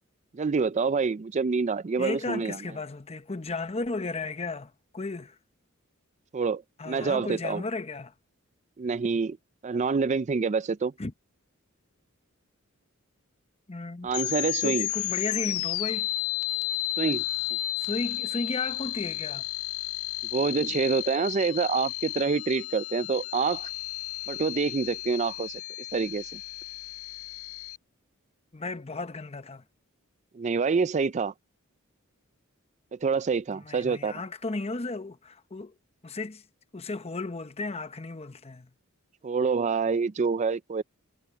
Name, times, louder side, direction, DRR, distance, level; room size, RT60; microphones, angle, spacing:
voice 1, 0.3-2.6 6.3-7.6 8.8-9.4 9.6-10.9 14.0-14.9 17.0-17.2 20.3-23.7 24.3-25.6 25.9-26.4 30.3-31.3 32.9-34.2 39.2-40.8, right 5 dB, 35° right, 0.4 m, -27 dB
voice 2, 2.0-5.3 6.8-8.1 11.0-11.1 13.7-14.1 14.6-16.1 17.8-19.4 28.5-29.6 33.5-35.7 36.0-36.4 36.7-38.7, left 3 dB, 30° left, 0.8 m, -34 dB
sound 1, 14.1-27.8, left 16 dB, 80° left, 0.5 m, -33 dB
head